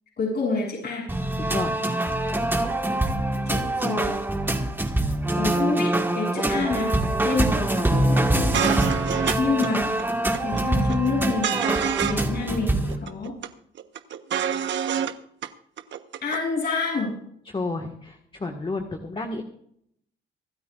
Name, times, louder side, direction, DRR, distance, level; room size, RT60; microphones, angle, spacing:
voice 1, 0.2-1.1 3.5-4.2 5.3-9.0 9.4-9.9 10.4-11.6 12.0-13.3 16.2-17.1, left 4 dB, 55° left, -2 dB, 7.5 m, -28 dB
sound 1, 1.1-13.0, right 1 dB, 10° right, 1.8 m, -24 dB
voice 2, 1.4-1.8 17.5-19.4, left 3 dB, 25° left, 3 dB, 1.8 m, -31 dB
sound 2, 8.2-8.3 8.5-9.4 9.6-9.7 10.0-10.6 10.9-12.2 12.5-12.6 12.9-13.5 13.8-15.1 15.4-15.5 15.8-16.4, right 8 dB, 70° right, 1.2 m, -27 dB
25.0 x 13.0 x 2.5 m, 0.70 s
cardioid pair, 90°, 20 cm